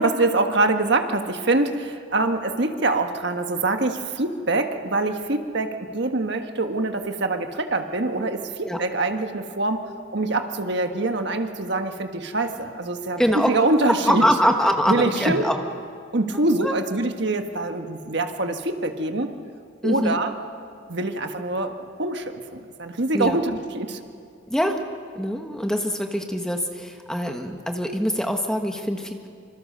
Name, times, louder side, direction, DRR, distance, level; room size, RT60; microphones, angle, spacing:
voice 1, 0.0-14.3 14.9-15.4 16.1-19.3 19.8-20.3 20.9-24.0, right 2 dB, 55° right, 6 dB, 1.5 m, -24 dB
voice 2, 13.2-13.5 13.9-15.6 16.6-16.7 19.8-20.2 23.1-23.4 24.5-24.8 25.1-29.3, equal, 5° left, 3 dB, 1.4 m, -23 dB
26.0 x 26.0 x 6.7 m, 2.4 s
head